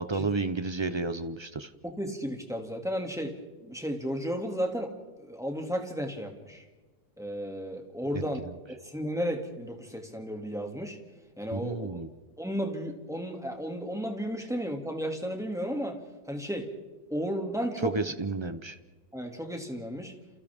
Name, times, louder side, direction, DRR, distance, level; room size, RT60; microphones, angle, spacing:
voice 1, 0.0-1.7 8.1-8.2 11.5-12.1 17.8-18.8, right 3 dB, 30° right, 10 dB, 0.5 m, -31 dB
voice 2, 1.8-3.3 3.6-4.9 5.2-6.6 7.2-8.4 8.7-11.0 11.4-11.9 12.4-16.0 16.3-16.7 17.1-17.9 19.1-20.1, equal, ahead, 2 dB, 2.4 m, -33 dB
29.5 x 28.5 x 3.7 m, 1.2 s
omnidirectional pair, 1.7 m